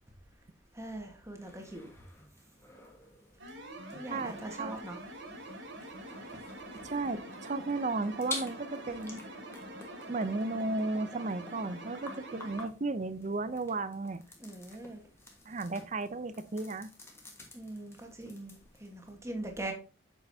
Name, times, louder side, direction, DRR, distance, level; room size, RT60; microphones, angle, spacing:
voice 1, 0.7-1.9 3.9-5.0 6.1-6.2 14.4-15.1 17.5-19.7, right 1 dB, 15° right, 1.4 m, -42 dB
sound 1, 1.4-19.1, left 2 dB, 15° left, 1.5 m, -50 dB
sound 2, 3.4-12.7, right 1 dB, 65° right, 2.3 m, -45 dB
voice 2, 4.1-4.8 6.8-9.2 10.1-14.2 15.5-16.9, right 3 dB, 35° right, 0.5 m, -34 dB
7.9 x 6.2 x 2.7 m
head